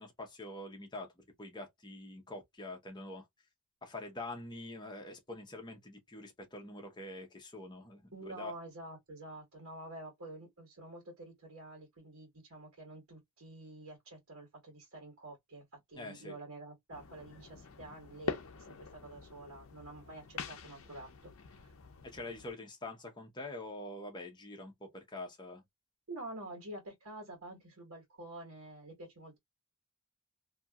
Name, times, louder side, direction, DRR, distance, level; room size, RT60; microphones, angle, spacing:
voice 1, 0.0-3.2 3.8-8.5 15.9-16.4 22.0-25.6, left 2 dB, 20° left, 0.9 m, -45 dB
voice 2, 8.1-21.7 26.1-29.4, right 2 dB, 75° right, 1.4 m, -48 dB
sound 1, 16.9-22.5, left 5 dB, 65° left, 0.6 m, -45 dB
2.8 x 2.6 x 2.4 m
head